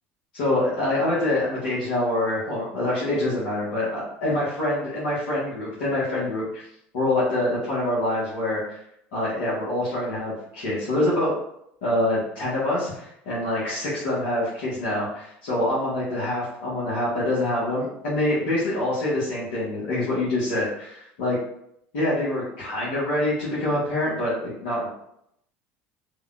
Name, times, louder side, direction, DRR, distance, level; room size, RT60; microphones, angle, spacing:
voice 1, 0.3-6.6 6.9-8.8 9.1-11.3 11.8-21.4 21.9-24.9, left 1 dB, 80° left, -10 dB, 1.1 m, -25 dB
3.4 x 2.2 x 2.4 m, 0.75 s
supercardioid pair, 90°, 6 cm